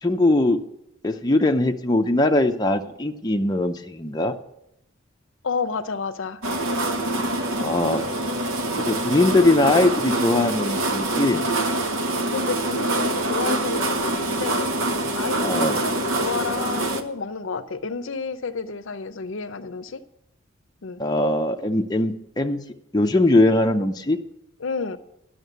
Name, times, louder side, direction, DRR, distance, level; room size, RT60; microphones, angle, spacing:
voice 1, 0.0-0.6 1.0-4.3 7.6-8.1 8.8-11.4 15.4-15.8 21.0-22.6 22.9-24.2, left 2 dB, 20° left, 3 dB, 0.5 m, -21 dB
voice 2, 5.4-6.4 12.0-14.8 15.1-20.0 20.8-21.0 24.6-25.0, left 4 dB, 65° left, 12 dB, 0.6 m, -30 dB
sound 1, 6.4-17.0, right 2 dB, 75° right, 1.0 m, -25 dB
11.0 x 6.4 x 8.0 m, 0.80 s
head